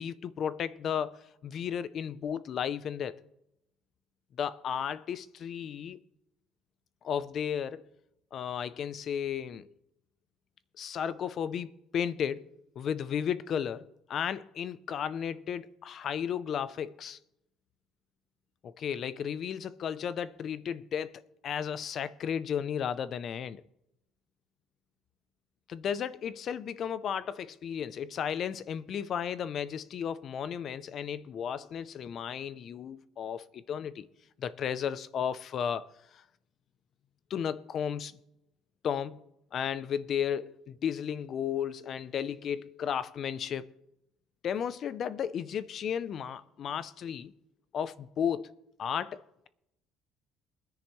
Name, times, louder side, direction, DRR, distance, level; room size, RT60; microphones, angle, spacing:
voice 1, 0.0-3.2 4.4-6.0 7.0-7.8 8.3-9.7 10.8-17.2 18.6-23.6 25.7-34.1 34.4-36.2 37.3-38.2 38.8-39.2 39.5-43.7 44.4-47.3 47.7-48.5 48.8-49.2, left 8 dB, 35° left, 0.5 m, -34 dB
22.5 x 10.0 x 3.1 m
cardioid pair, 180°, 0 cm